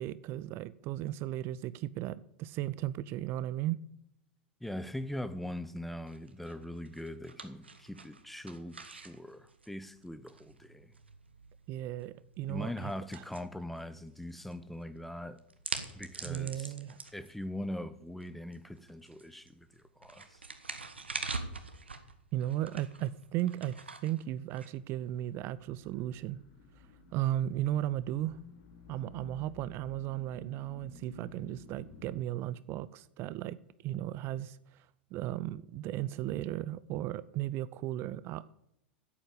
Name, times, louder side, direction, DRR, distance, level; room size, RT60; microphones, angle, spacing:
voice 1, 0.0-3.8 11.7-13.2 16.3-17.0 22.3-23.7 24.0-26.4 27.1-28.4 28.9-33.6 33.8-34.9 35.1-38.4, right 13 dB, 45° right, 0.5 m, -35 dB
voice 2, 4.6-10.9 12.5-15.4 15.9-16.7 17.1-20.4, left 1 dB, 5° left, 0.9 m, -41 dB
sound 1, 6.1-25.3, right 4 dB, 90° right, 1.3 m, -46 dB
sound 2, 24.8-32.2, left 5 dB, 60° left, 4.6 m, -54 dB
9.8 x 8.4 x 8.5 m
hypercardioid pair, 90°, 6 cm